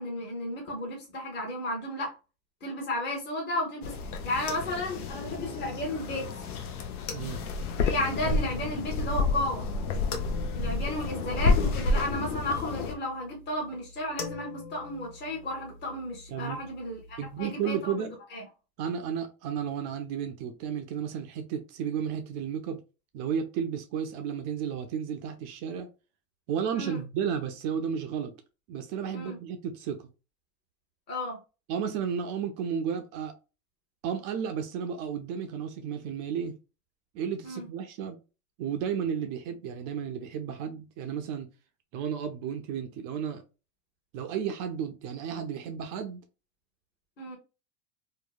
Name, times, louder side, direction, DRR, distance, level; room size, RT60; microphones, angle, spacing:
voice 1, 0.0-2.1 2.6-3.9 4.2-6.4 7.8-9.7 10.5-18.0 18.3-18.4 26.7-27.0 29.1-29.4 31.1-31.4 37.4-37.6 47.2-47.4, left 1 dB, 25° left, 0.9 m, -33 dB
sound 1, 3.8-12.9, left 3 dB, 90° left, 0.6 m, -30 dB
sound 2, 3.8-17.4, left 4 dB, 50° left, 0.9 m, -46 dB
voice 2, 7.1-7.4 16.3-16.7 17.2-18.2 18.8-22.8 23.1-25.9 26.5-28.3 28.7-30.1 31.7-33.3 34.0-36.5 37.1-38.2 38.6-41.5 41.9-43.4 44.1-46.2, right 7 dB, 40° right, 0.4 m, -33 dB
2.8 x 2.1 x 2.3 m
hypercardioid pair, 115°, 43 cm